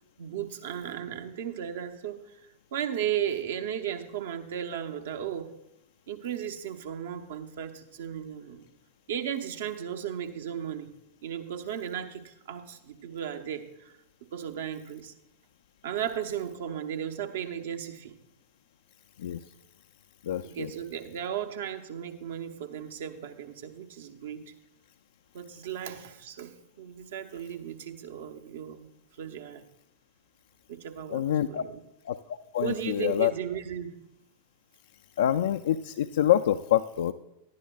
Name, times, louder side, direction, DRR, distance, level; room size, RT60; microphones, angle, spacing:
voice 1, 0.2-2.4 2.7-5.5 6.1-8.7 9.1-10.9 11.2-13.9 14.3-15.1 15.8-18.1 20.4-24.5 25.3-28.9 29.2-29.6 30.7-31.8 32.6-34.1, right 9 dB, 60° right, 6 dB, 0.9 m, -35 dB
voice 2, 20.3-20.7 31.1-31.6 32.1-32.2 32.5-33.3 35.2-37.1, left 11 dB, 60° left, 6 dB, 0.3 m, -26 dB
17.0 x 11.5 x 2.3 m, 0.88 s
figure-of-eight pair, 90°, 0 cm